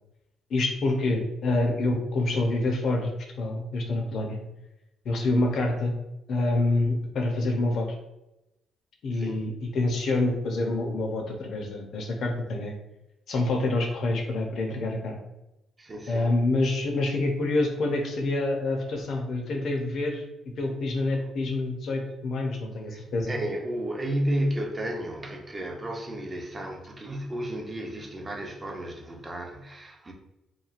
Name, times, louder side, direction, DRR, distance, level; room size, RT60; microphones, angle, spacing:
voice 1, 0.5-3.1 3.4-4.4 5.0-5.9 6.3-7.9 9.0-12.8 13.3-15.2 16.1-20.2 20.6-23.3, left 2 dB, 65° left, 2 dB, 0.6 m, -27 dB
voice 2, 15.8-16.3 22.9-30.1, right 1 dB, 30° right, 1 dB, 0.5 m, -32 dB
3.0 x 2.3 x 2.4 m, 0.92 s
cardioid pair, 90°, 0 cm